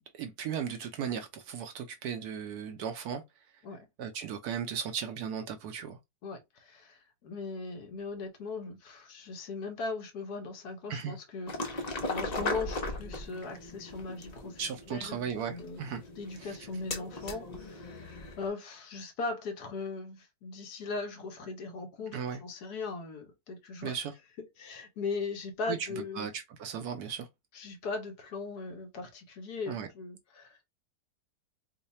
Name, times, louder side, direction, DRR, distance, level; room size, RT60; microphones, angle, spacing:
voice 1, 0.1-3.2 4.0-6.0 10.9-11.1 14.6-16.0 22.1-22.4 23.8-24.1 25.7-27.3 29.7-29.9, right 7 dB, 70° right, 1.0 m, -36 dB
voice 2, 6.2-15.8 16.2-18.1 18.4-23.9 24.6-26.3 27.5-30.7, left 4 dB, 65° left, 1.3 m, -39 dB
sound 1, 11.5-18.5, left 2 dB, 50° left, 0.4 m, -38 dB
3.1 x 2.2 x 4.1 m
omnidirectional pair, 1.9 m